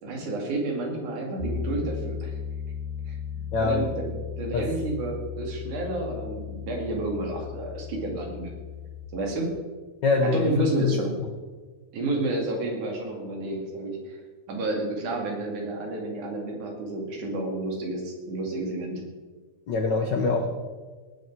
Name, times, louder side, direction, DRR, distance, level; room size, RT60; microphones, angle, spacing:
voice 1, 0.0-2.4 3.1-3.2 3.6-8.5 9.1-9.6 10.3-11.2 11.9-14.2 14.5-19.0, right 2 dB, 75° right, 1 dB, 3.9 m, -30 dB
Piano, 1.4-9.1, left 7 dB, 15° left, 2.8 m, -36 dB
voice 2, 3.5-3.9 4.5-4.7 10.0-11.0 19.7-20.5, left 3 dB, 85° left, 4 dB, 0.9 m, -24 dB
18.5 x 9.6 x 4.6 m, 1.4 s
omnidirectional pair, 3.5 m